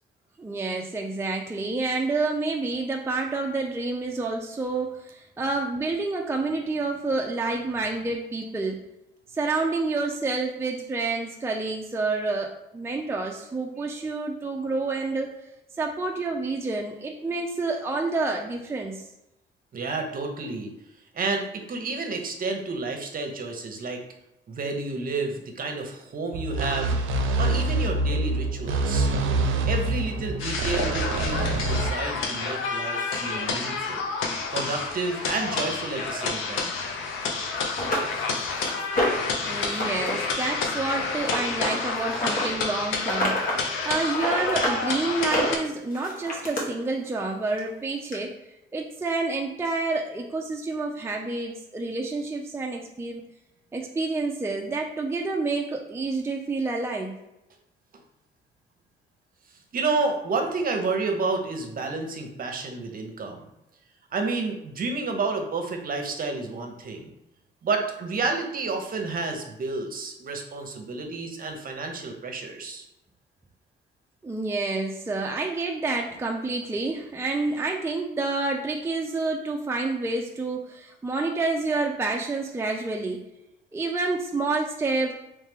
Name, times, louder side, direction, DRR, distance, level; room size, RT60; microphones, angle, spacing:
voice 1, 0.4-8.9 9.3-15.3 15.8-19.1 39.5-48.3 48.7-53.2 53.7-57.2 74.2-83.2 83.7-85.1, right 3 dB, 15° right, 1 dB, 0.4 m, -28 dB
voice 2, 19.7-20.7 21.1-24.0 24.5-26.9 27.4-29.1 29.7-34.1 34.5-36.8 59.7-63.4 64.1-67.1 67.6-72.8, right 3 dB, 45° right, 4 dB, 0.8 m, -30 dB
sound 1, 26.3-31.9, right 2 dB, 80° right, 0.5 m, -25 dB
sound 2, 30.4-45.6, left 4 dB, 85° left, 0.6 m, -29 dB
sound 3, 37.2-37.3 37.8-39.3 39.7-40.1 40.4-42.5 43.0-43.6 43.9-44.8 45.2-46.6 47.6-47.7 48.1-48.2, equal, 45° left, 1.2 m, -28 dB
3.2 x 3.1 x 3.5 m, 0.87 s
cardioid pair, 90°, 20 cm